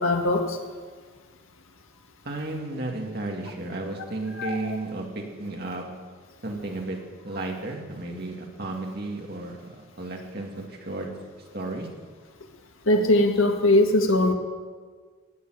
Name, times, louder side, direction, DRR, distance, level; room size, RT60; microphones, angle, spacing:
voice 1, 0.0-0.4 4.4-4.6 12.9-14.3, left 1 dB, 85° left, 4 dB, 1.7 m, -20 dB
voice 2, 2.2-5.8 6.4-7.0 7.2-11.1 11.5-11.9, right 2 dB, 50° right, 1 dB, 2.2 m, -33 dB
17.0 x 7.2 x 9.4 m, 1.5 s
head